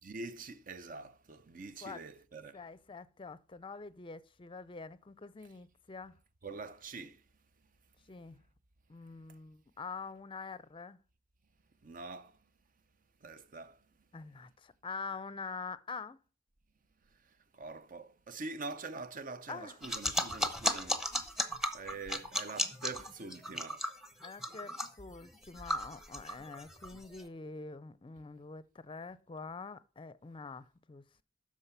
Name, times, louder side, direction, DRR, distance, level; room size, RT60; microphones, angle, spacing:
voice 1, 0.0-2.6 6.4-7.2 11.8-12.3 13.2-13.8 17.5-23.9, right 3 dB, 50° right, 0.6 m, -45 dB
voice 2, 2.5-6.1 8.1-8.4 8.9-11.0 14.1-16.2 19.5-19.8 24.2-31.2, left 4 dB, 30° left, 0.5 m, -45 dB
sound 1, 19.8-27.2, left 1 dB, ahead, 0.9 m, -35 dB
12.5 x 4.8 x 5.6 m
head